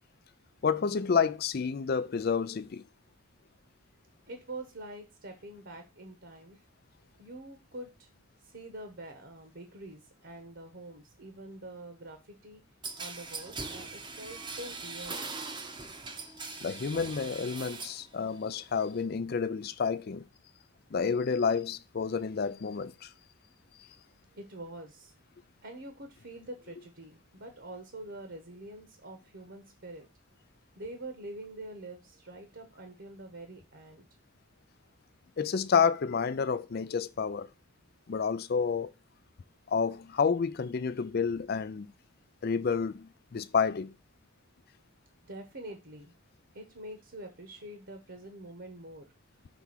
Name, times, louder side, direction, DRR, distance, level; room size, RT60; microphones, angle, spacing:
voice 1, 0.6-2.8 16.6-20.2 20.9-23.1 35.4-37.5 38.1-38.9 39.7-41.9 42.4-43.9, left 6 dB, 45° left, 0.4 m, -29 dB
voice 2, 4.3-6.6 7.2-12.6 13.0-15.3 24.4-25.1 25.6-30.1 30.8-34.1 45.3-46.1 46.5-49.1, right 1 dB, 55° right, 1.0 m, -45 dB
sound 1, 12.8-18.0 18.4-19.0, right 4 dB, 20° right, 0.7 m, -41 dB
6.1 x 3.5 x 5.6 m
head